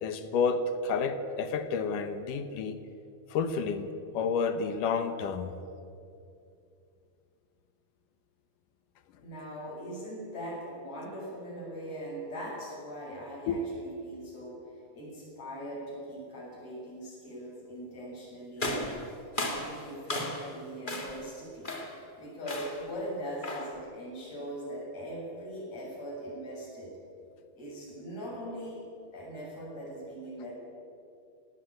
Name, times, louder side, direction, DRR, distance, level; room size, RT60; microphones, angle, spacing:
voice 1, 0.0-2.8 3.3-5.5 13.5-13.6, left 5 dB, 65° left, 10 dB, 2.6 m, -30 dB
voice 2, 9.2-19.1 19.5-26.9 27.6-28.8 29.1-30.5, equal, 45° left, -5 dB, 8.2 m, -41 dB
sound 1, 18.6-20.6 20.9-21.3 21.6-22.0 22.5-22.9 23.4-23.8, left 1 dB, 20° left, 1.4 m, -35 dB
18.5 x 18.5 x 9.0 m, 2.6 s
omnidirectional pair, 4.3 m